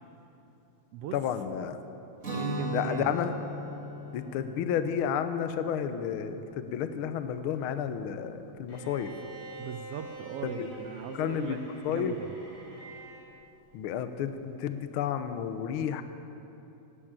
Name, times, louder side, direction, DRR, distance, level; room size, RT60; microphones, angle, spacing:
voice 1, 1.1-1.8 2.7-3.3 4.1-9.1 10.4-10.7 11.1-12.2 13.7-16.0, left 8 dB, 80° left, 9 dB, 1.2 m, -31 dB
Guitar, 2.2-8.0, equal, 25° right, 2.3 m, -39 dB
voice 2, 2.3-3.1 9.6-11.6 11.9-12.3, right 9 dB, 80° right, 7 dB, 1.4 m, -38 dB
Bowed string instrument, 8.7-13.4, right 2 dB, 60° left, 4.6 m, -46 dB
17.5 x 8.8 x 8.9 m, 3.0 s
omnidirectional pair, 3.3 m